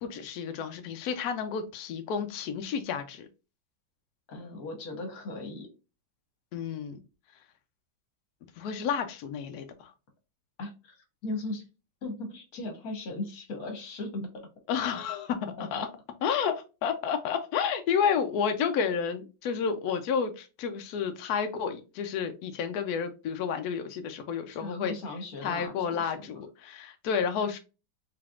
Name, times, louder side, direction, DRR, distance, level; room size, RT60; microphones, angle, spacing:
voice 1, 0.0-3.3 6.5-7.0 8.6-9.9 14.7-15.9 16.2-24.9 25.4-27.6, left 7 dB, 85° left, 7 dB, 0.8 m, -31 dB
voice 2, 4.3-5.7 10.6-11.6 12.0-14.5 15.6-15.8 24.5-26.4, left 2 dB, 55° left, 5 dB, 1.3 m, -38 dB
4.0 x 3.4 x 2.3 m, 0.30 s
omnidirectional pair, 2.2 m